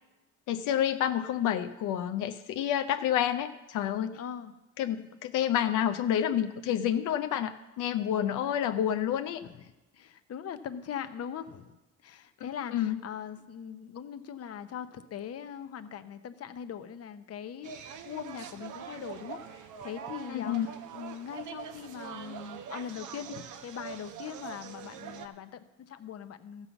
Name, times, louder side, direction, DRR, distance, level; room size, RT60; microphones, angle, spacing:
voice 1, 0.5-4.2 4.8-9.4 12.7-13.0 20.3-20.7, left 10 dB, 90° left, 8 dB, 0.6 m, -29 dB
voice 2, 4.1-4.5 8.4-8.7 9.4-9.6 9.9-11.7 12.0-26.7, left 8 dB, 55° left, 10 dB, 0.8 m, -41 dB
sound 1, 17.6-25.3, right 8 dB, 80° right, 0.9 m, -43 dB
14.0 x 5.6 x 7.0 m, 1.1 s
cardioid pair, 90°, 30 cm